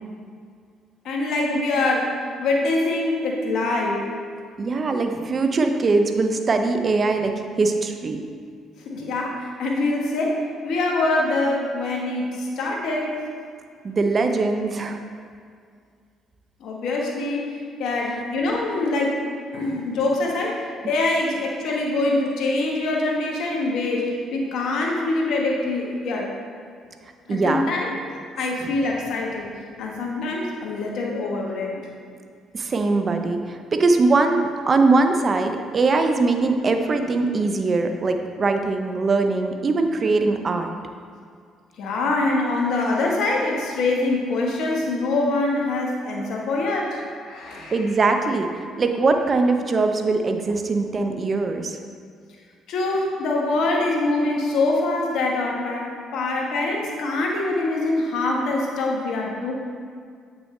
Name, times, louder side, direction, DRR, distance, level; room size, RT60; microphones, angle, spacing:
voice 1, 1.0-4.1 8.8-13.1 16.6-19.2 19.5-26.3 27.3-27.9 28.4-29.5 29.8-31.9 41.8-47.7 52.7-59.5, left 2 dB, 70° left, -1 dB, 1.3 m, -24 dB
voice 2, 4.6-8.2 13.8-15.0 20.8-20.9 27.3-27.7 28.6-28.8 32.5-40.7 47.7-48.5 48.8-51.8, right 3 dB, 40° right, 6 dB, 0.7 m, -21 dB
7.9 x 6.1 x 3.2 m, 2.1 s
supercardioid pair, 60°, 0 cm